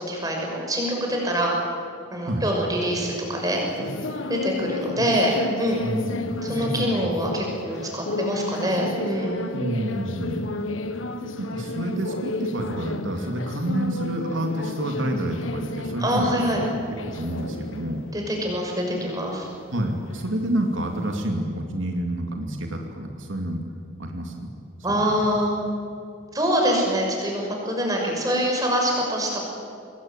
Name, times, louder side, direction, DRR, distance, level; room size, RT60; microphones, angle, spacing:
voice 1, 0.0-1.6 2.1-3.6 4.3-5.8 6.4-9.4 16.0-16.6 18.1-19.5 24.8-25.6 26.3-29.4, equal, 20° right, 0 dB, 6.2 m, -25 dB
sound 1, 2.8-21.3, left 2 dB, 80° left, 1.5 m, -33 dB
voice 2, 5.8-7.2 9.5-10.4 11.4-16.6 17.0-18.0 18.9-19.1 19.7-23.6 24.0-24.5 24.9-25.2, right 1 dB, 75° right, 3 dB, 2.8 m, -29 dB
25.0 x 21.0 x 9.1 m, 2.5 s
head